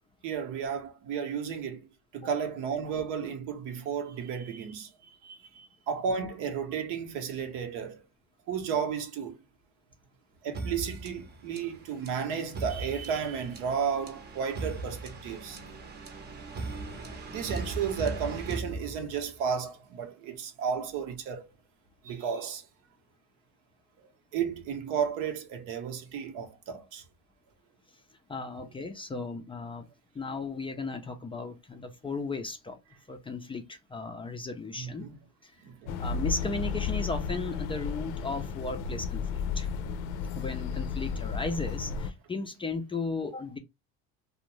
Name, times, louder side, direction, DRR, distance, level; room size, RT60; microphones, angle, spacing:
voice 1, 0.2-1.9 2.1-8.0 8.5-9.4 10.4-15.6 16.7-16.8 17.3-21.5 22.0-22.7 24.3-27.0 34.8-35.2 35.6-36.0, right 7 dB, 70° right, 0.8 m, -33 dB
sound 1, 10.5-19.4, right 3 dB, 30° right, 0.7 m, -39 dB
voice 2, 28.3-29.9 30.1-32.8 33.1-35.1 35.4-35.5 36.0-39.7 40.3-43.6, left 3 dB, 15° left, 0.4 m, -35 dB
sound 2, 35.9-42.1, left 5 dB, 85° left, 0.5 m, -33 dB
2.5 x 2.1 x 3.0 m
supercardioid pair, 100°, 32 cm